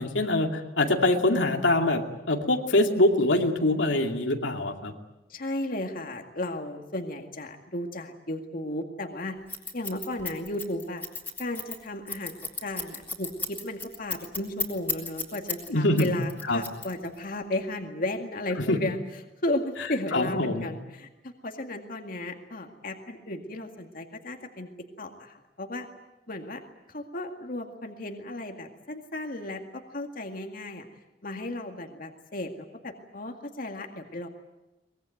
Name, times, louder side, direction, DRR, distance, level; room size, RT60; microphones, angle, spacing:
voice 1, 0.0-4.9 15.7-16.1 16.5-16.6 18.7-18.8 20.1-20.7, left 1 dB, 90° left, 3 dB, 2.5 m, -24 dB
voice 2, 5.3-9.4 9.7-11.0 11.4-12.3 12.6-19.0 19.4-24.7 25.0-25.9 26.3-26.6 26.9-30.9 31.2-34.3, left 1 dB, 50° left, 4 dB, 2.1 m, -34 dB
Scissors, 9.5-15.7 16.0-17.2, left 4 dB, 10° left, 3.5 m, -33 dB
23.5 x 20.5 x 9.3 m, 0.99 s
head